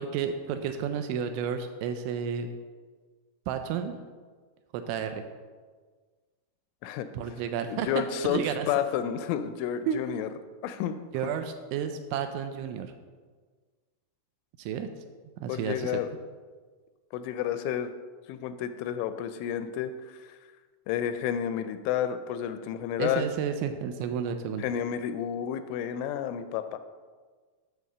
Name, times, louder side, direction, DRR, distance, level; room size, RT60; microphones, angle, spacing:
voice 1, 0.0-2.5 3.5-4.0 4.7-5.2 7.1-7.9 8.2-8.7 9.9-10.0 11.1-12.9 14.6-14.9 15.4-16.0 23.0-24.7, right 8 dB, 85° right, 7 dB, 2.8 m, -31 dB
voice 2, 7.7-8.4 8.7-10.3 10.6-11.3 15.5-16.1 17.1-17.9 18.3-20.4 20.9-23.3 24.6-26.8, left 9 dB, 85° left, 10 dB, 2.9 m, -31 dB
11.0 x 4.1 x 6.6 m, 1.5 s
omnidirectional pair, 5.6 m